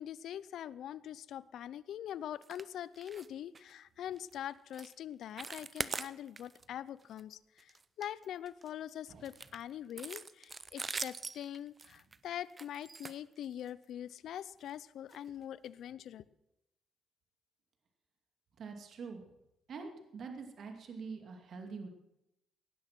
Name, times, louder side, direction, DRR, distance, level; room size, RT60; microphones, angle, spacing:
voice 1, 0.0-7.7 8.0-16.2, left 10 dB, 75° left, 19 dB, 0.5 m, -43 dB
sound 1, 2.4-2.7 2.9-3.3 3.5-3.7 4.2-4.4 4.7-4.9 5.2-6.6 7.0-7.2 7.6-8.7 9.2-13.8 14.6-14.7 15.1-15.2 15.6-15.7, right 4 dB, 30° right, 0.6 m, -43 dB
voice 2, 18.6-19.2 19.7-21.9, right 5 dB, 60° right, 4 dB, 2.5 m, -45 dB
18.0 x 10.5 x 6.0 m, 0.85 s
cardioid pair, 90°, 0 cm